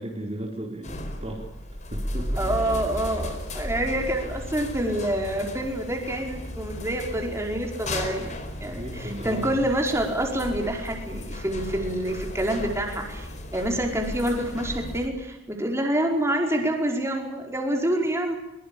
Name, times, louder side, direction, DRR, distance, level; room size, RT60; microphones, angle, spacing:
voice 1, 0.0-1.4 1.9-2.5 4.0-4.1 8.7-9.5, right 1 dB, 30° right, 0 dB, 4.4 m, -35 dB
sound 1, 0.8-15.1, left 1 dB, 35° left, 4.5 m, -35 dB
voice 2, 2.4-18.4, right 1 dB, 15° right, 1 dB, 5.1 m, -27 dB
23.5 x 23.0 x 8.8 m, 0.93 s
head